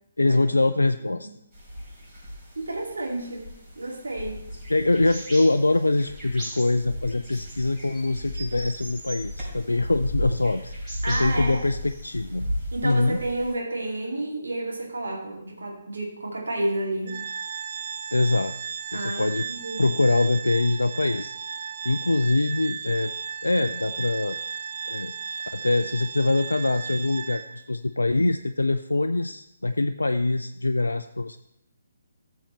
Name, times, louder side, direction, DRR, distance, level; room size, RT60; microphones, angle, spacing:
voice 1, 0.2-1.3 4.7-12.5 12.8-13.2 18.1-18.5 18.9-19.4 19.8-21.3 21.8-23.1 23.4-24.4 24.9-25.1 25.5-31.4, left 2 dB, 75° left, 9 dB, 0.3 m, -24 dB
voice 2, 1.0-1.3 2.6-4.5 11.0-11.6 12.7-17.2 18.9-19.9, right 2 dB, 65° right, -2 dB, 2.4 m, -31 dB
sound 1, 1.5-13.5, equal, 20° right, 4.1 m, -36 dB
Organ, 17.1-27.7, right 6 dB, 45° right, 0.8 m, -35 dB
14.0 x 7.1 x 3.1 m, 0.81 s
figure-of-eight pair, 135°, 0 cm